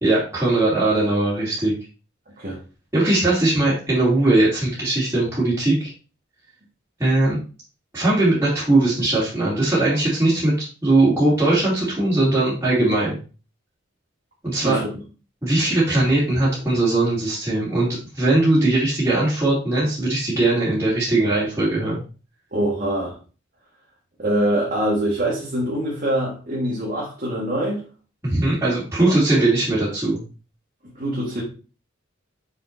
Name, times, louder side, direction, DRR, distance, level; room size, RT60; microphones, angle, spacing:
voice 1, 0.0-1.7 2.9-5.9 7.0-7.4 7.9-10.5 10.8-13.2 14.4-15.0 15.4-17.9 18.1-22.0 28.2-30.2, right 2 dB, 15° right, -9 dB, 2.7 m, -20 dB
voice 2, 22.5-23.2 24.2-27.8 29.0-29.2 31.0-31.4, right 1 dB, 45° right, -5 dB, 1.7 m, -24 dB
6.5 x 6.1 x 2.7 m, 0.36 s
head